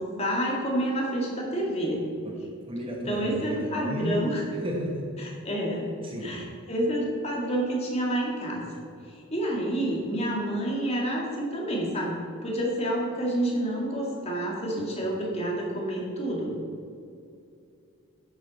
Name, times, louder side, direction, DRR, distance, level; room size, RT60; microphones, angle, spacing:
voice 1, 0.0-2.0 3.1-4.4 5.2-5.9 6.2-8.7 9.1-16.6, right 1 dB, 30° left, -2 dB, 2.0 m, -29 dB
voice 2, 2.7-4.2 4.5-5.1 6.0-6.4, equal, 25° right, 0 dB, 1.0 m, -33 dB
11.0 x 7.2 x 4.2 m, 2.5 s
head